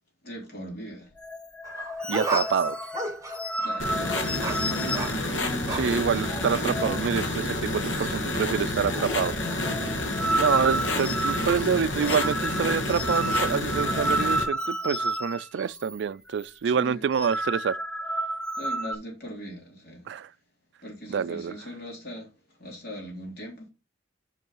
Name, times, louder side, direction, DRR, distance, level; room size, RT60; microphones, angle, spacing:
voice 1, 0.2-1.1 3.6-5.1 10.9-11.0 16.7-17.0 18.6-20.0 20.8-22.3 22.6-23.7, equal, 55° left, 3.4 m, -40 dB
sound 1, 1.2-7.1 7.4-7.6 7.8-8.4 8.7-16.0 16.3-16.5 17.0-19.0, right 1 dB, 5° left, 0.5 m, -31 dB
sound 2, 1.6-6.1 6.5-6.7, right 3 dB, 15° right, 1.1 m, -34 dB
voice 2, 2.1-2.8 5.7-9.4 10.4-17.8 20.1-20.3 21.1-21.6, right 7 dB, 65° right, 0.3 m, -27 dB
sound 3, 3.8-14.4, left 2 dB, 80° left, 1.5 m, -29 dB
5.4 x 5.3 x 5.5 m
head